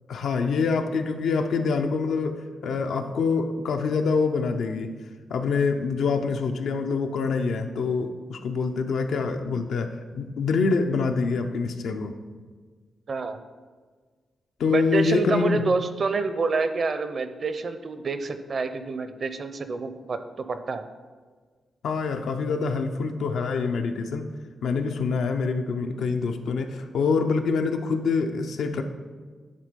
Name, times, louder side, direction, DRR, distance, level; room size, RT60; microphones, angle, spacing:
voice 1, 0.1-5.0 5.3-12.1 14.6-15.6 21.8-24.3 24.6-28.8, left 4 dB, 80° left, 6 dB, 0.6 m, -25 dB
voice 2, 13.1-13.4 14.7-20.9, right 4 dB, 50° right, 10 dB, 0.5 m, -27 dB
10.5 x 3.6 x 5.2 m, 1.5 s
cardioid pair, 110°, 0 cm